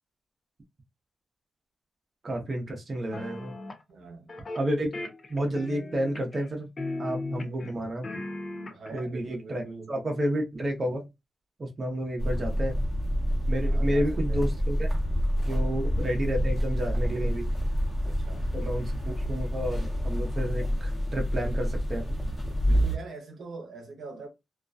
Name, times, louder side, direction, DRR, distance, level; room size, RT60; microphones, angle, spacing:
voice 1, 2.2-3.5 4.6-4.9 5.3-6.7 7.0-8.0 8.9-11.0 11.6-12.8 13.5-14.9 15.5-17.5 18.5-22.1, right 1 dB, 45° right, 0.6 m, -31 dB
sound 1, 3.1-3.8 4.3-4.6 4.9-6.5 6.8-7.7 8.0-9.0, left 2 dB, 45° left, 0.4 m, -37 dB
voice 2, 3.9-4.3 8.7-9.9 13.6-14.5 15.5-15.8 18.0-18.5 22.6-24.3, right 3 dB, 75° right, 0.7 m, -43 dB
sound 2, 12.2-23.0, equal, 25° left, 1.0 m, -27 dB
2.3 x 2.1 x 2.5 m
cardioid pair, 75°, 0 cm